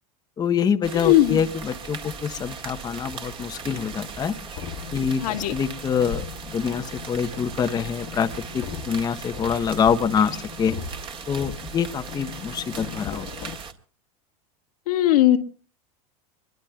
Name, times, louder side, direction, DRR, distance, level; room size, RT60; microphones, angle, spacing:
voice 1, 0.4-4.3 4.9-5.2 5.5-10.7 11.3-13.5, left 7 dB, 20° left, 7 dB, 0.9 m, -25 dB
sound 1, 0.8-13.7, right 5 dB, 30° right, 1.9 m, -38 dB
voice 2, 0.9-1.4 5.2-5.5 14.9-15.4, left 14 dB, 85° left, 5 dB, 1.9 m, -18 dB
sound 2, 3.6-13.5, left 8 dB, 65° left, 1.6 m, -39 dB
24.5 x 22.5 x 2.3 m, 0.41 s
supercardioid pair, 135°, 19 cm